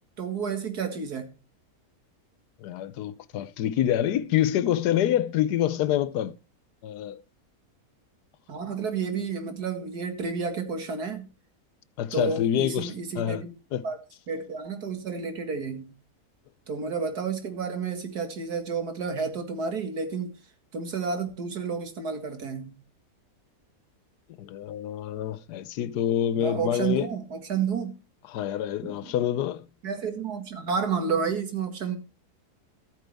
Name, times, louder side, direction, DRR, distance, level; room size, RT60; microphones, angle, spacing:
voice 1, 0.2-1.3 8.5-11.3 12.1-13.5 13.8-14.0 14.3-15.9 16.7-20.3 20.7-22.8 26.4-27.9 28.8-29.2 29.8-32.0, right 5 dB, 75° right, 2.4 m, -31 dB
voice 2, 2.6-6.4 6.8-7.2 12.0-13.4 13.7-13.8 24.4-27.1 28.3-29.6, left 11 dB, 85° left, 1.3 m, -26 dB
14.0 x 9.1 x 3.4 m
omnidirectional pair, 1.7 m